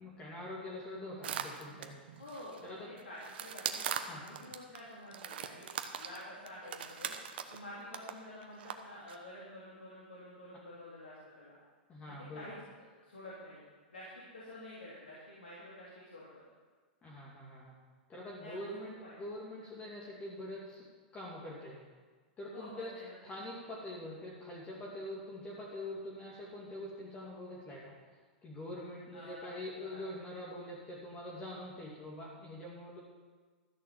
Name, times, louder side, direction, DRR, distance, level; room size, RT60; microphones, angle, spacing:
voice 1, 0.0-2.0 2.6-2.8 4.1-4.2 11.9-12.5 17.0-17.7 18.1-20.9 21.1-21.8 22.4-22.9 23.2-28.0 28.4-33.0, left 1 dB, 25° left, -5 dB, 2.6 m, -44 dB
sound 1, 1.2-2.6 3.0-4.8 5.1-7.6 7.9-8.1 8.4-8.7 9.1-9.2, right 9 dB, 70° right, 1.1 m, -40 dB
voice 2, 2.2-5.7 6.0-7.1 7.5-11.5 12.1-13.6 13.9-16.4 18.4-18.7 19.0-19.2 22.5-23.1 29.1-30.0, left 1 dB, 90° left, -7 dB, 3.3 m, -49 dB
13.5 x 6.6 x 7.5 m, 1.5 s
hypercardioid pair, 115°, 6 cm